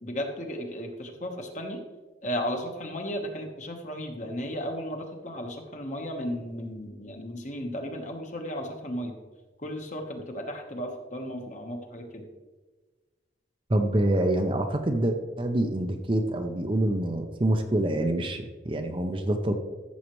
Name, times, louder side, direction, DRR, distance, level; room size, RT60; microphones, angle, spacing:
voice 1, 0.0-1.8 2.2-9.2 9.6-12.3, equal, 40° left, 3 dB, 1.3 m, -35 dB
voice 2, 13.7-19.5, right 1 dB, 30° right, 5 dB, 0.7 m, -26 dB
14.0 x 7.2 x 3.2 m, 1.2 s
head